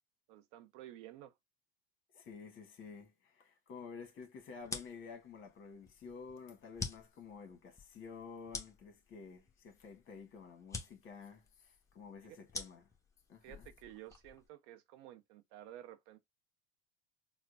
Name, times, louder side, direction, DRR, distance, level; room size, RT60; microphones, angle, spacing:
voice 1, 0.3-1.3 12.2-12.4 13.4-16.2, right 13 dB, 60° right, 0.7 m, -53 dB
voice 2, 2.1-12.9 13.3-13.6, left 5 dB, 40° left, 1.4 m, -51 dB
sound 1, 4.6-14.5, left 3 dB, 10° left, 0.9 m, -48 dB
4.4 x 2.2 x 2.5 m
hypercardioid pair, 85°, 32 cm